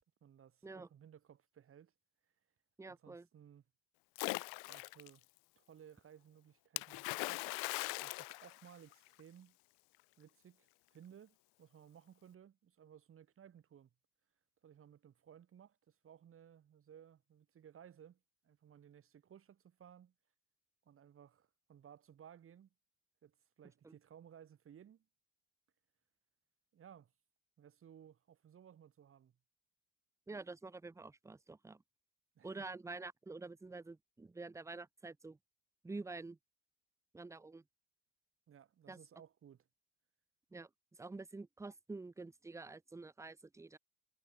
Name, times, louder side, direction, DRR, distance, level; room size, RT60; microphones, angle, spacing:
voice 1, 0.2-1.9 2.8-3.6 4.7-5.3 5.6-9.6 10.2-13.9 14.6-20.1 20.9-22.7 23.2-25.1 26.7-27.1 27.6-29.3 32.4-32.7 38.5-39.7, right 9 dB, 30° right, 3.5 m, -60 dB
voice 2, 2.8-3.3 23.8-23.9 30.3-31.8 32.4-35.4 35.8-36.4 37.1-37.6 38.9-39.0 40.5-40.7 41.0-43.8, right 3 dB, 5° right, 0.9 m, -48 dB
Splash splatter, 4.1-5.1 6.8-9.2, left 32 dB, 65° left, 1.5 m, -40 dB
supercardioid pair, 120°, 41 cm